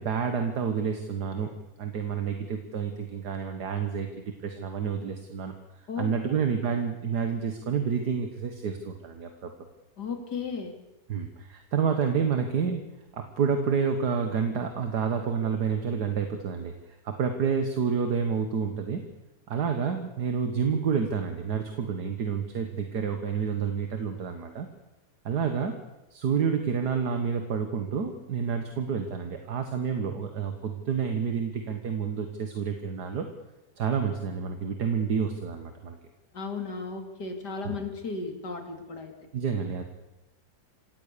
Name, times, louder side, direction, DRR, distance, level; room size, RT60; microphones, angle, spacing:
voice 1, 0.0-1.5 1.8-5.5 6.0-9.5 11.1-12.8 13.1-19.0 19.5-24.7 25.3-25.8 26.1-33.3 33.8-36.0 37.6-37.8 39.3-39.8, right 6 dB, 70° right, 6 dB, 2.0 m, -29 dB
voice 2, 5.9-6.3 10.0-10.7 36.3-39.1, left 4 dB, 70° left, 5 dB, 3.4 m, -35 dB
27.0 x 17.0 x 6.9 m, 0.98 s
omnidirectional pair, 1.8 m